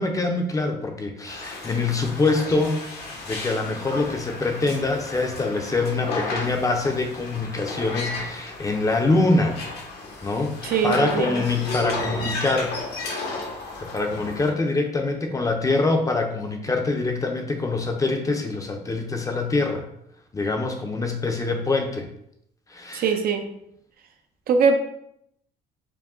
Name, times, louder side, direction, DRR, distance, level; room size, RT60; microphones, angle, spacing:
voice 1, 0.0-9.6 10.2-12.8 13.8-19.8 20.3-22.1 22.7-23.2, left 3 dB, 20° left, 4 dB, 0.6 m, -24 dB
sound 1, 1.3-14.5, left 3 dB, 75° left, 1.1 m, -34 dB
voice 2, 10.6-11.4 22.9-23.5 24.5-24.8, right 5 dB, 60° right, 5 dB, 0.6 m, -21 dB
4.8 x 2.2 x 3.6 m, 0.74 s
cardioid pair, 110°, 17 cm